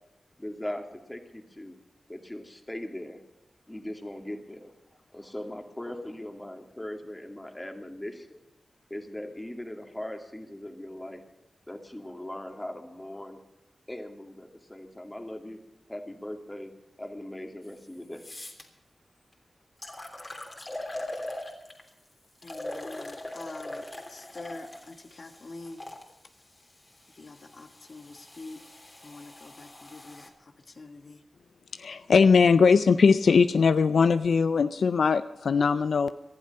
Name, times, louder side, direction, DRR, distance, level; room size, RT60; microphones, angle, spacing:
voice 1, 0.4-1.8 2.1-3.2 3.7-4.7 5.1-8.4 8.9-11.2 11.7-13.4 13.9-15.6 15.9-16.7 17.0-18.2, left 1 dB, 15° left, 4 dB, 2.4 m, -39 dB
sound 1, 17.6-17.7 18.1-18.6 19.3-19.4 19.8-21.9 22.4-26.0 26.9-30.3, left 1 dB, 35° left, 3.1 m, -41 dB
voice 2, 22.4-23.8 24.1-25.8 27.1-28.6 29.0-30.3 30.7-31.2, left 3 dB, 55° left, 6 dB, 1.4 m, -45 dB
voice 3, 31.7-36.1, left 5 dB, 80° left, 12 dB, 0.4 m, -20 dB
19.0 x 11.5 x 5.5 m, 0.94 s
cardioid pair, 50°, 0 cm